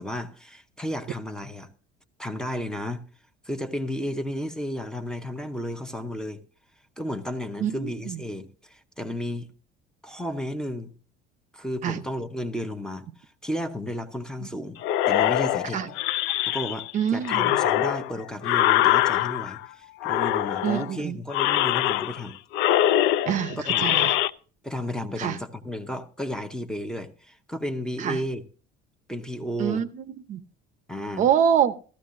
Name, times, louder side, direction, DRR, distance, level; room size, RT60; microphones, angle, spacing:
voice 1, 0.0-1.7 2.2-3.0 3.4-6.4 7.0-9.5 10.0-10.9 11.5-14.8 15.1-15.8 16.4-22.4 23.7-23.9 24.6-28.4 29.1-29.8 30.9-31.3, left 1 dB, 5° left, 0.7 m, -33 dB
voice 2, 7.6-8.2 11.8-12.0 14.4-14.5 15.7-15.9 16.9-17.6 20.6-21.2 23.3-24.2 25.2-25.4 28.0-28.2 29.6-30.4 31.2-31.7, right 9 dB, 35° right, 0.7 m, -25 dB
sound 1, 14.8-16.9 17.2-19.6 20.0-20.9 21.3-22.3 22.5-24.3, left 13 dB, 65° left, 0.6 m, -23 dB
14.5 x 14.0 x 2.6 m
cardioid pair, 180°, 21 cm